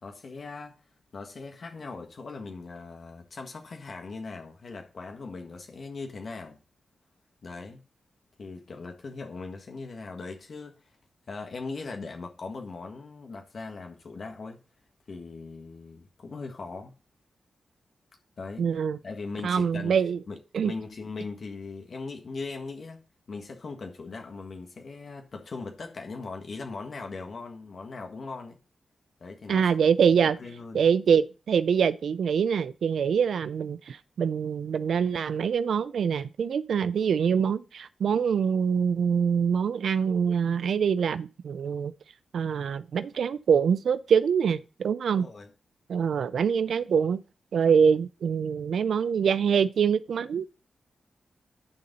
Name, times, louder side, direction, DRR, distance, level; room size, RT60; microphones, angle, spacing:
voice 1, 0.0-0.8 1.1-6.6 7.4-7.8 8.4-10.9 11.3-14.6 15.1-17.0 18.4-18.7 19.0-20.0 20.3-20.4 20.6-23.0 23.3-28.6 29.2-29.7 30.2-30.8 45.1-45.5, left 4 dB, 60° left, 1.5 m, -39 dB
voice 2, 18.6-19.0 19.4-20.2 20.5-20.7 29.5-30.4 30.7-41.9 42.3-45.3 45.9-47.2 47.5-50.5, right 7 dB, 80° right, 0.4 m, -24 dB
11.5 x 4.0 x 5.3 m
cardioid pair, 65°, 0 cm